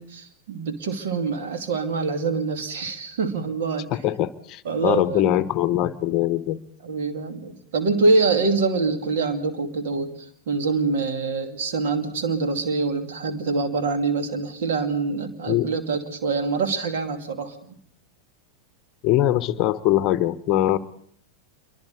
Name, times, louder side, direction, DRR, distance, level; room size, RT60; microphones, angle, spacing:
voice 1, 0.0-3.9 4.6-5.3 6.8-17.8, right 4 dB, 55° right, 6 dB, 2.5 m, -25 dB
voice 2, 4.0-6.6 15.5-15.6 19.0-20.8, left 13 dB, 35° left, 13 dB, 0.9 m, -22 dB
27.5 x 23.5 x 4.1 m, 0.63 s
figure-of-eight pair, 90°, 0 cm